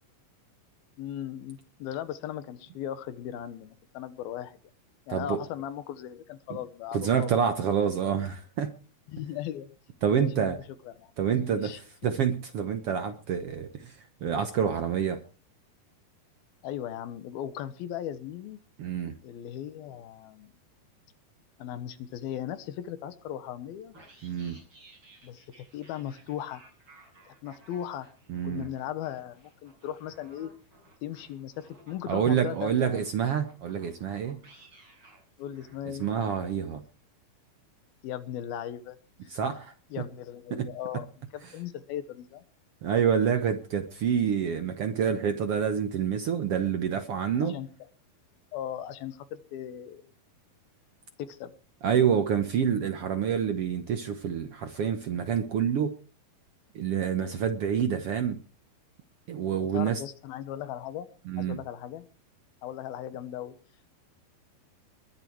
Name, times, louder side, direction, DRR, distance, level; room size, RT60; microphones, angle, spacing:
voice 1, 1.0-4.6 5.1-7.3 9.1-9.7 10.1-10.5 10.9-11.8 16.6-18.6 19.2-20.5 21.6-23.9 25.2-26.6 27.4-28.1 28.4-30.5 31.0-33.0 35.4-36.1 38.0-39.0 39.2-39.3 39.9-41.1 41.3-42.4 47.4-47.7 48.5-50.1 51.2-51.5 59.7-61.1 61.4-62.1 62.6-63.6, left 11 dB, 85° left, 12 dB, 3.1 m, -37 dB
voice 2, 6.9-8.7 10.0-10.6 11.2-15.2 18.8-19.1 24.2-24.6 28.3-28.7 32.1-34.4 35.9-36.8 39.3-39.7 40.5-40.7 41.4-41.5 42.8-47.6 51.8-55.9 56.7-58.4 59.3-60.0 61.3-61.6, right 8 dB, 75° right, 8 dB, 1.3 m, -27 dB
sound 1, 23.9-36.5, right 1 dB, 30° right, 8.3 m, -57 dB
21.5 x 9.9 x 4.7 m, 0.37 s
omnidirectional pair, 4.2 m